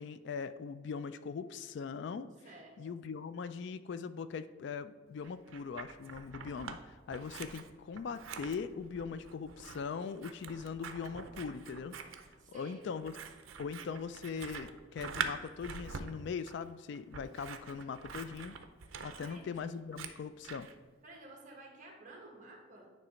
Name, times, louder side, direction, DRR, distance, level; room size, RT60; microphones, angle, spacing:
voice 1, 0.0-2.3 2.8-11.9 12.5-13.2 13.6-18.5 19.0-20.7, left 5 dB, 60° left, 13 dB, 0.3 m, -41 dB
voice 2, 2.4-3.0 12.4-12.9 18.9-19.5 21.0-22.9, right 2 dB, 40° right, 0 dB, 1.5 m, -53 dB
Scissors, 5.2-6.8 7.1-20.7, right 5 dB, 85° right, 0.6 m, -45 dB
9.6 x 3.2 x 5.1 m, 1.4 s
head